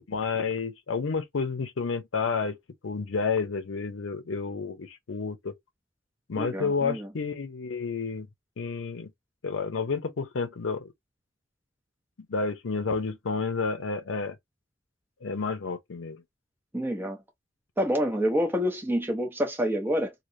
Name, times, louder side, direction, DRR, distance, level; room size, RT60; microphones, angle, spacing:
voice 1, 0.1-2.6 2.8-5.5 6.3-8.3 8.6-9.1 9.4-10.9 12.3-14.4 15.2-16.2, left 4 dB, 85° left, 0.6 m, -30 dB
voice 2, 6.4-7.1 16.7-17.2 17.8-20.1, equal, 10° right, 0.6 m, -27 dB
3.1 x 2.7 x 2.6 m
head